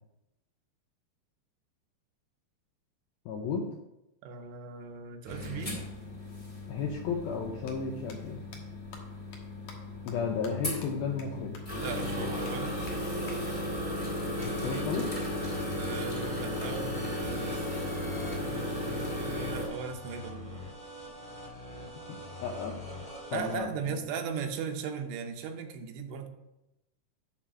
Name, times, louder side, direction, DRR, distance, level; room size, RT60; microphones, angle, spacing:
voice 1, 3.3-3.6 6.7-8.4 10.0-11.6 14.4-15.2 22.0-22.8 23.3-24.0, left 5 dB, 85° left, 1 dB, 2.1 m, -34 dB
voice 2, 4.2-5.8 11.8-12.8 15.7-20.6 23.3-26.3, right 6 dB, 80° right, 5 dB, 3.0 m, -38 dB
sound 1, 5.3-19.7, left 1 dB, 20° left, 1.4 m, -35 dB
sound 2, 7.7-7.8 8.1-8.2 8.5-8.6 8.9-9.0 9.3-9.4 9.7-9.8 10.1-10.2 10.4-10.5 10.8-10.9 11.2-11.3 11.5-11.6 12.0-12.1 12.5-12.6 12.9-13.0 13.3-13.4 15.0-16.0, left 5 dB, 65° left, 2.2 m, -50 dB
sound 3, 14.4-23.6, equal, 5° right, 1.5 m, -44 dB
11.0 x 4.0 x 6.2 m, 0.92 s
omnidirectional pair, 5.2 m